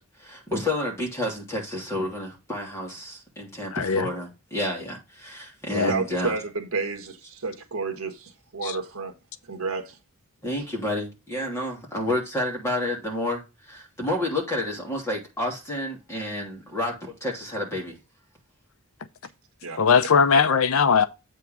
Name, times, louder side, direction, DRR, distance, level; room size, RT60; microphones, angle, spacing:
voice 1, 0.2-6.4 10.4-18.0, left 1 dB, 10° left, 3.0 m, -30 dB
voice 2, 3.7-4.1 5.7-5.9 8.6-8.8 19.8-21.0, left 6 dB, 70° left, 0.6 m, -20 dB
voice 3, 5.7-9.1 9.4-10.0 19.6-19.8 20.3-20.4, right 4 dB, 70° right, 1.6 m, -31 dB
8.2 x 3.6 x 5.9 m
head